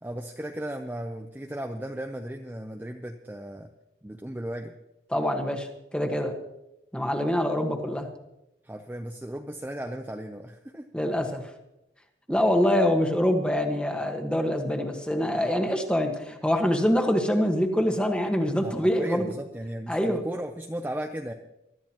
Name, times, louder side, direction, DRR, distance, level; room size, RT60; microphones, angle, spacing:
voice 1, 0.0-3.7 4.0-4.7 8.6-10.9 12.3-12.4 18.6-21.3, right 1 dB, 10° right, 3 dB, 0.6 m, -36 dB
voice 2, 5.1-6.3 6.9-8.1 10.9-11.4 12.3-19.3 19.9-20.2, equal, 5° left, 3 dB, 1.4 m, -25 dB
23.0 x 13.0 x 3.0 m, 0.90 s
head